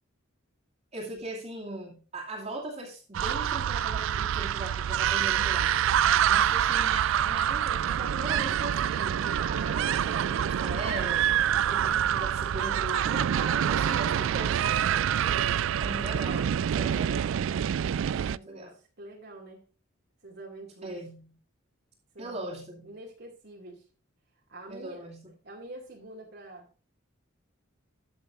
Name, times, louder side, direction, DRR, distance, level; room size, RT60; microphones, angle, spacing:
voice 1, 0.9-5.9 6.3-11.3 11.7-14.8 15.8-17.4 18.3-18.7 20.8-21.4 22.2-22.9 24.7-25.3, right 2 dB, 30° right, -4 dB, 2.7 m, -39 dB
sound 1, 3.1-18.4, right 9 dB, 70° right, 0.3 m, -26 dB
voice 2, 15.2-15.6 18.4-19.6 20.2-21.0 22.1-23.9 24.5-25.1 25.4-26.7, right 1 dB, 50° right, -1 dB, 2.4 m, -46 dB
13.5 x 7.0 x 2.6 m, 0.36 s
head